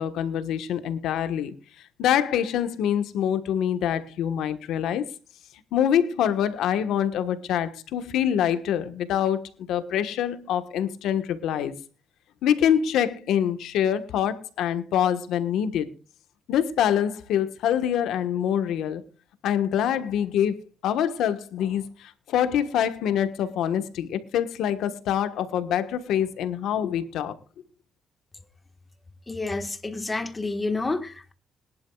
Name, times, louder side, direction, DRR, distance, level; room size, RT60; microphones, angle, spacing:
voice 1, 0.0-1.6 2.0-5.1 5.7-11.7 12.4-15.9 16.5-19.0 19.4-20.5 20.8-27.4, left 9 dB, 85° left, 1.3 m, -25 dB
voice 2, 29.3-31.3, left 3 dB, 20° left, 1.4 m, -29 dB
21.5 x 11.5 x 2.4 m
cardioid pair, 90°, 0 cm